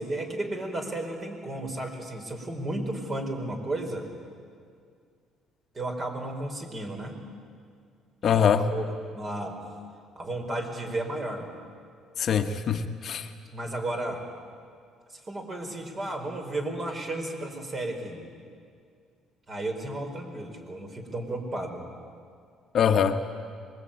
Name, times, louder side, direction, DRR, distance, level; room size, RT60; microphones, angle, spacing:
voice 1, 0.0-4.1 5.7-7.2 8.2-9.6 10.2-11.5 13.5-14.2 15.1-18.2 19.5-21.8, right 1 dB, 30° right, 4 dB, 4.6 m, -33 dB
voice 2, 8.2-8.7 12.2-13.3 22.7-23.2, left 7 dB, 50° left, 6 dB, 1.2 m, -23 dB
25.0 x 22.0 x 8.9 m, 2.2 s
cardioid pair, 115°, 0 cm